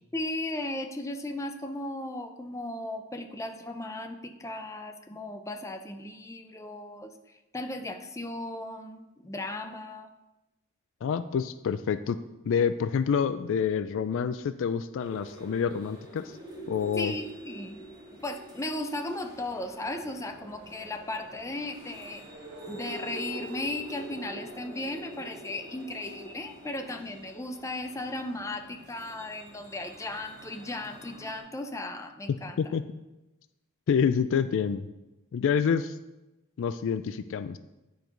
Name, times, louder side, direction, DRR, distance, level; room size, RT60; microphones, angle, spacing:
voice 1, 0.1-10.1 16.9-17.8 18.1-22.2 22.7-32.7, left 1 dB, 15° left, 6 dB, 0.6 m, -36 dB
voice 2, 11.0-12.2 12.4-16.2 16.7-17.1 32.6-32.8 33.9-34.9 35.3-35.9 36.6-37.6, left 7 dB, 60° left, 12 dB, 0.3 m, -27 dB
sound 1, 15.0-31.4, right 1 dB, 20° right, 2.1 m, -46 dB
10.0 x 4.6 x 5.2 m, 1.0 s
head